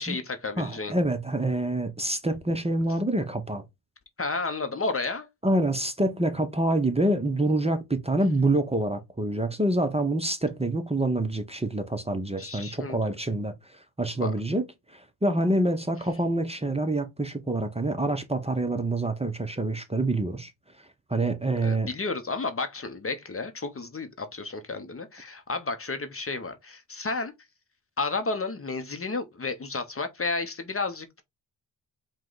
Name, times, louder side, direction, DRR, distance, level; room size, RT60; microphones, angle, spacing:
voice 1, 0.0-0.9 4.2-5.3 12.4-13.0 14.2-14.3 21.6-27.3 28.0-31.2, left 3 dB, 30° left, 0.8 m, -32 dB
voice 2, 0.6-3.6 5.4-20.5 21.1-21.9, right 1 dB, 15° right, 0.7 m, -26 dB
4.8 x 2.3 x 3.8 m
cardioid pair, 70°, 47 cm